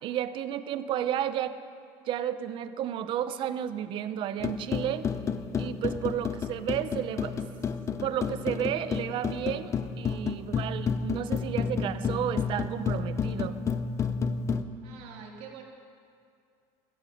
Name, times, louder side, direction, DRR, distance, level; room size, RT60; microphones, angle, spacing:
voice 1, 0.0-1.6 2.1-5.1 5.6-7.3 8.0-13.5, right 10 dB, 45° right, 12 dB, 0.7 m, -32 dB
sound 1, 4.4-14.6, left 6 dB, 25° left, 0.6 m, -31 dB
voice 2, 14.8-15.6, right 7 dB, 70° right, 0 dB, 2.6 m, -45 dB
16.0 x 14.0 x 5.2 m, 2.3 s
cardioid pair, 145°, 11 cm